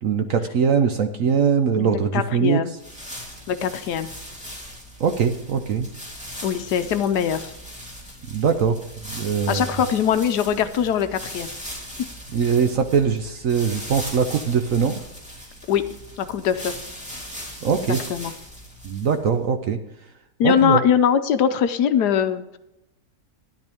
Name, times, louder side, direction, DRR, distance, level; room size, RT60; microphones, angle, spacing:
voice 1, 0.0-2.6 5.0-5.9 8.3-9.7 12.3-15.0 17.6-18.0 18.8-19.8 20.4-20.8, right 6 dB, 60° right, 6 dB, 0.9 m, -21 dB
voice 2, 1.8-2.7 3.5-4.1 6.4-7.5 9.5-11.5 15.7-15.8 16.2-16.7 18.1-18.3 20.4-22.6, left 8 dB, 70° left, 10 dB, 1.2 m, -22 dB
sound 1, 2.8-19.3, equal, 5° right, 2.9 m, -39 dB
12.5 x 10.5 x 3.5 m, 0.90 s
omnidirectional pair, 1.9 m